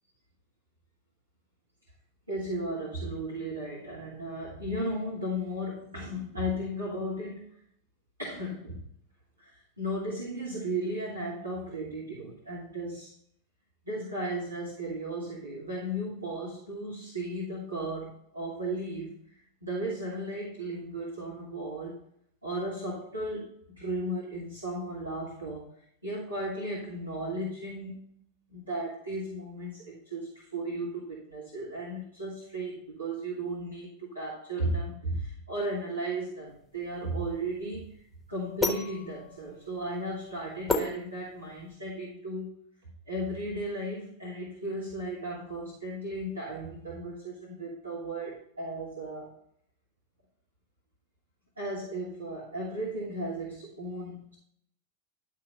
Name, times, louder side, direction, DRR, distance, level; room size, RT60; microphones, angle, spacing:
voice 1, 2.3-7.5 8.2-8.8 9.4-13.1 13.8-19.2 19.6-22.0 22.4-25.7 26.0-27.9 28.5-37.9 38.3-42.5 43.1-49.3 51.6-54.4, right 1 dB, 80° right, -7 dB, 2.7 m, -35 dB
sound 1, 36.5-41.7, left 3 dB, 10° left, 1.2 m, -34 dB
11.5 x 3.9 x 5.4 m, 0.67 s
figure-of-eight pair, 90°, 0 cm